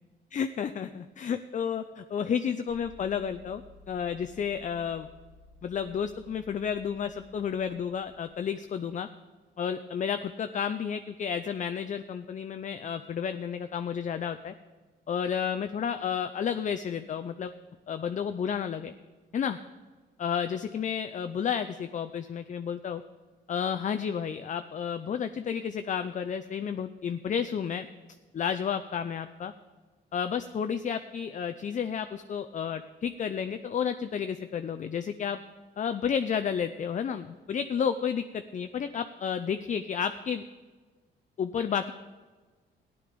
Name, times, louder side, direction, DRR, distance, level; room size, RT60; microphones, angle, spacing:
voice 1, 0.3-3.6 3.9-5.1 5.6-9.1 9.6-14.5 15.1-17.5 17.9-18.9 19.3-19.6 20.2-23.0 23.5-27.9 28.3-29.5 30.1-35.4 35.8-40.4 41.4-41.9, left 7 dB, 40° left, 9 dB, 0.5 m, -31 dB
sound 1, 2.7-8.8, left 2 dB, 70° right, 2.0 m, -56 dB
14.5 x 10.5 x 5.2 m, 1.3 s
cardioid pair, 90°, 20 cm